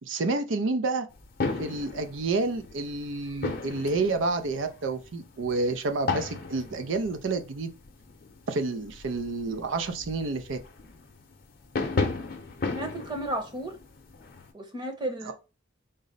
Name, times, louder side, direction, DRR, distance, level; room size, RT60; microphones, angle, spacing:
voice 1, 0.0-1.1 1.6-7.7 8.5-10.6 15.2-15.3, right 3 dB, 75° right, 0.5 m, -29 dB
sound 1, 1.1-14.5, left 3 dB, 50° left, 0.7 m, -36 dB
voice 2, 12.7-13.7 14.5-15.3, right 1 dB, 25° right, 0.9 m, -33 dB
3.9 x 2.0 x 3.8 m
head